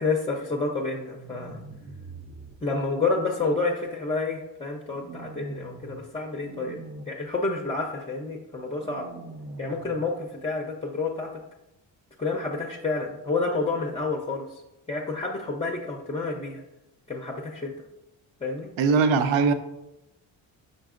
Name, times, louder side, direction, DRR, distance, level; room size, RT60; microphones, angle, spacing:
voice 1, 0.0-1.6 2.6-6.8 7.1-9.0 9.6-11.3 12.2-14.5 14.9-16.6 17.1-17.7 18.4-18.7, left 3 dB, 15° left, 1 dB, 0.6 m, -29 dB
sound 1, 1.1-2.6 4.9-6.0 6.3-7.0 8.8-10.0, right 3 dB, 25° right, 0.6 m, -42 dB
voice 2, 18.8-19.5, right 5 dB, 70° right, 9 dB, 0.6 m, -20 dB
5.3 x 3.9 x 2.5 m, 0.92 s
supercardioid pair, 60°, 49 cm